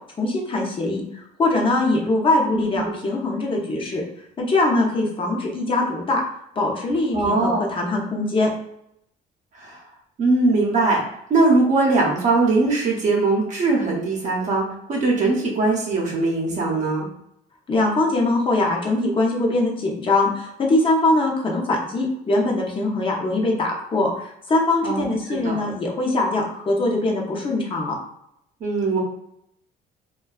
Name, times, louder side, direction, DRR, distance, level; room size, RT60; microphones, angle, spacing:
voice 1, 0.2-4.0 4.4-6.2 6.6-8.5 17.7-27.9, left 2 dB, 30° left, -1 dB, 0.7 m, -22 dB
voice 2, 2.5-2.9 7.1-7.7 9.5-9.8 10.2-11.0 11.3-17.1 24.8-25.6 28.6-29.0, right 3 dB, 45° right, -2 dB, 0.7 m, -21 dB
2.6 x 2.3 x 2.3 m, 0.76 s
cardioid pair, 110°, 17 cm